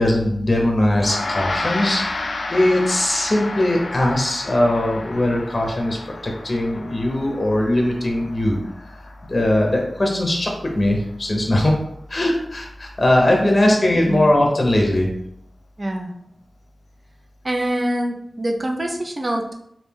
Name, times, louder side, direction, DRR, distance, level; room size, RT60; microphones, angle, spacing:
voice 1, 0.0-6.0 6.2-8.6 8.9-11.8 12.1-15.1, left 1 dB, 35° left, 0 dB, 0.8 m, -20 dB
Gong, 0.9-10.6, left 2 dB, 65° left, 0.4 m, -31 dB
voice 2, 15.8-16.1 17.4-19.6, right 1 dB, 35° right, 1 dB, 0.6 m, -24 dB
3.2 x 2.6 x 3.5 m, 0.73 s
wide cardioid pair, 95°, 0 cm